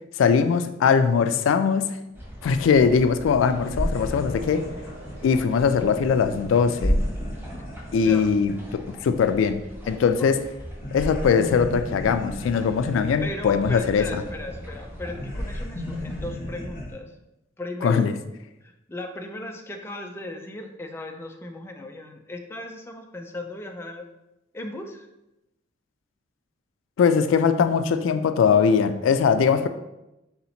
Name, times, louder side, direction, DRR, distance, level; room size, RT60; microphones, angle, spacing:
voice 1, 0.2-2.0 2.4-4.7 5.2-7.1 7.9-10.4 10.9-14.2 17.8-18.1 27.0-29.7, left 6 dB, 85° left, 9 dB, 0.3 m, -21 dB
sound 1, 2.1-16.3, equal, 10° right, 0.8 m, -43 dB
sound 2, 3.2-10.3 10.6-16.9, equal, 50° left, 1.4 m, -33 dB
sound 3, 3.5-9.8, equal, 70° right, 1.2 m, -45 dB
voice 2, 13.2-17.1 17.6-18.1 18.6-24.1 24.5-25.1, left 1 dB, 15° left, 3 dB, 0.4 m, -36 dB
3.9 x 2.8 x 4.1 m, 0.92 s
head